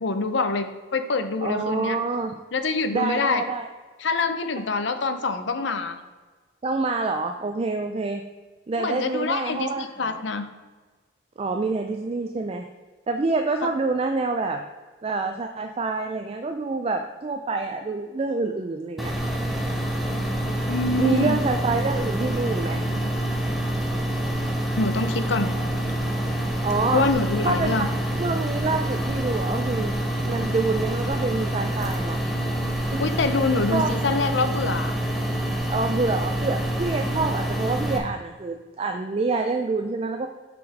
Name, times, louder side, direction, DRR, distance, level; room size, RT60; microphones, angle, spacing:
voice 1, 0.0-2.0 2.5-3.4 4.0-6.0 8.8-10.5 20.7-21.4 24.8-25.5 26.9-27.9 33.0-34.9, left 3 dB, 65° left, 9 dB, 0.6 m, -25 dB
voice 2, 1.4-2.3 2.9-3.7 6.6-8.2 8.7-10.2 11.4-12.6 13.1-14.6 15.0-19.1 21.0-22.8 26.6-27.1 27.4-27.9 28.2-30.0 30.2-32.2 32.9-33.1 33.7-33.9 35.7-40.3, right 3 dB, 30° right, 5 dB, 0.3 m, -27 dB
sound 1, 19.0-38.0, right 1 dB, ahead, 0.9 m, -26 dB
6.1 x 5.2 x 4.8 m, 1.3 s
head